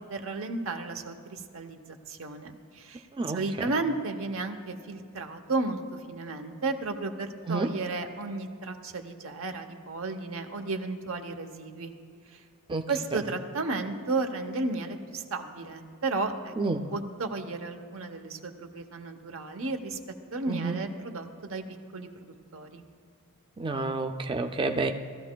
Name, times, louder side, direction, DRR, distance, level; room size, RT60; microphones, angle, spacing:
voice 1, 0.1-3.1 3.3-11.9 12.3-12.4 12.9-16.5 16.9-20.0 20.3-21.6 21.9-22.8, right 3 dB, 65° right, 7 dB, 0.9 m, -33 dB
voice 2, 16.6-16.9 20.5-20.8 23.6-24.9, right 3 dB, 20° right, 5 dB, 0.4 m, -29 dB
18.5 x 13.5 x 2.3 m, 2.3 s
head